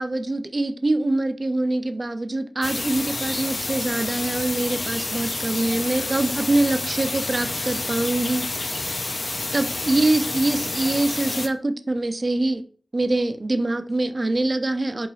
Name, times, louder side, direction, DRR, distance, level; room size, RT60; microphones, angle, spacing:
voice 1, 0.0-8.5 9.5-12.6 12.9-15.1, right 2 dB, 35° right, 10 dB, 0.3 m, -24 dB
sound 1, 2.6-11.5, left 2 dB, 50° left, 0.4 m, -29 dB
2.8 x 2.3 x 3.9 m, 0.43 s
wide cardioid pair, 70°, 0 cm